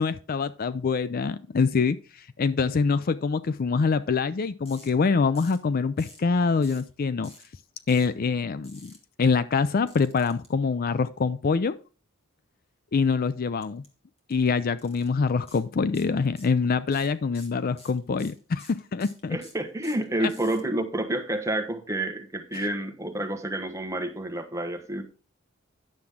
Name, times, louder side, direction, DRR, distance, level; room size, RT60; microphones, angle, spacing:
voice 1, 0.0-2.0 2.4-7.3 7.9-11.7 12.9-13.8 14.3-19.4 20.2-20.3 22.5-22.6, left 5 dB, 45° left, 15 dB, 0.4 m, -25 dB
sound 1, 4.6-4.9 5.3-5.6 6.0-6.2 6.6-6.9 7.2-7.5 7.9-8.1 8.6-9.0 9.9-10.5 13.6-13.9 14.2-14.3 14.8-15.1 15.5-15.6 15.9-16.6 16.9-20.6, left 2 dB, 30° left, 2.2 m, -50 dB
voice 2, 19.3-25.0, right 1 dB, 15° right, 5 dB, 1.2 m, -29 dB
9.7 x 7.2 x 3.6 m, 0.35 s
head